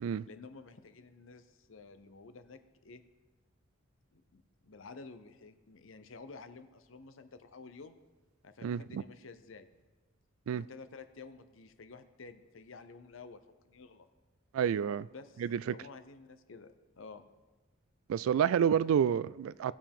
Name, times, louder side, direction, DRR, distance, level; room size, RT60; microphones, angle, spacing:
voice 1, 0.3-3.0 4.1-8.0 8.4-9.7 10.5-14.1 15.1-15.4 15.7-17.2, left 4 dB, 65° left, 0.7 m, -51 dB
voice 2, 8.6-9.0 10.5-10.6 14.5-15.1 15.4-15.7 18.1-19.7, right 8 dB, 80° right, 0.3 m, -29 dB
18.0 x 7.1 x 3.6 m
head